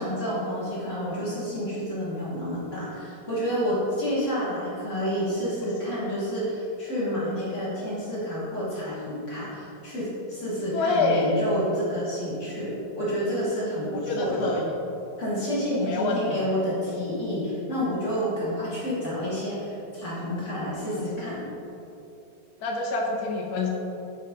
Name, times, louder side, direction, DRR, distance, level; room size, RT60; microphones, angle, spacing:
voice 1, 0.0-14.6 15.2-21.5, equal, 45° left, -7 dB, 2.0 m, -29 dB
voice 2, 10.7-11.3 14.1-14.7 15.8-16.5 22.6-23.7, left 3 dB, 70° left, 0 dB, 1.1 m, -26 dB
9.6 x 4.3 x 3.7 m, 2.8 s
omnidirectional pair, 1.9 m